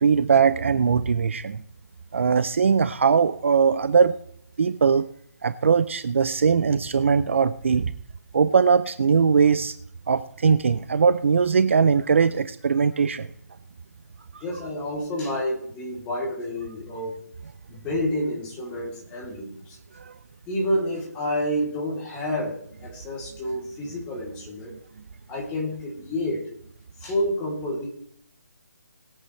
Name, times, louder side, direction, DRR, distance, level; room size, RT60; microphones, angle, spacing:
voice 1, 0.0-1.6 2.1-4.2 4.6-5.1 5.4-7.9 8.3-9.7 10.1-13.3, right 6 dB, 45° right, 13 dB, 0.5 m, -20 dB
voice 2, 14.4-17.1 17.7-19.8 20.5-24.7 25.3-26.5 27.0-27.9, left 1 dB, 10° left, -3 dB, 3.0 m, -29 dB
21.0 x 8.5 x 3.2 m, 0.63 s
hypercardioid pair, 170°, 10 cm